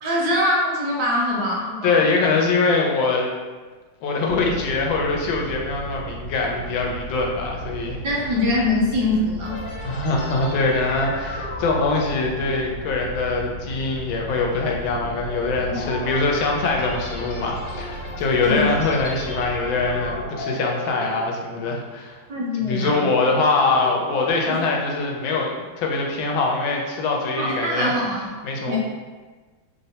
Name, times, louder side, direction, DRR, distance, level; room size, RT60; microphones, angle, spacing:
voice 1, 0.0-2.0 8.0-9.5 18.4-18.6 22.3-23.1 24.5-24.6 27.4-28.3 28.7-28.8, left 1 dB, 70° right, -4 dB, 1.1 m, -23 dB
voice 2, 1.8-3.3 4.0-8.0 9.8-22.2 22.6-28.0 28.4-28.8, left 3 dB, 90° left, 0 dB, 1.3 m, -23 dB
sound 1, 4.3-20.3, right 1 dB, 90° right, 1.4 m, -36 dB
sound 2, 9.4-21.9 22.3-22.5 23.0-24.3, left 1 dB, 55° left, 1.0 m, -36 dB
3.3 x 2.0 x 2.7 m, 1.3 s
omnidirectional pair, 2.1 m